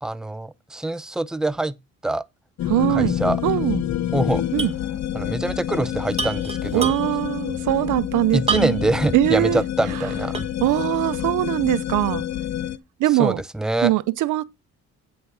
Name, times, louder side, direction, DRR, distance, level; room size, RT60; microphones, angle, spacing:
voice 1, 0.0-1.8 2.0-2.3 2.9-3.4 4.1-4.4 5.1-7.0 8.3-10.4 13.2-13.9, right 2 dB, ahead, 0.6 m, -24 dB
sound 1, 2.6-12.8, left 11 dB, 60° left, 1.0 m, -27 dB
voice 2, 2.7-3.1 3.4-3.8 4.5-4.7 6.7-8.9 9.1-9.6 10.6-12.2 13.0-13.4 13.8-14.4, right 15 dB, 80° right, 0.6 m, -21 dB
sound 2, 4.6-4.8 5.1-5.2 6.1-7.3 8.5-9.0 9.5-9.6 10.3-10.7, right 5 dB, 20° right, 1.6 m, -28 dB
9.2 x 6.3 x 4.7 m
cardioid pair, 90°, 30 cm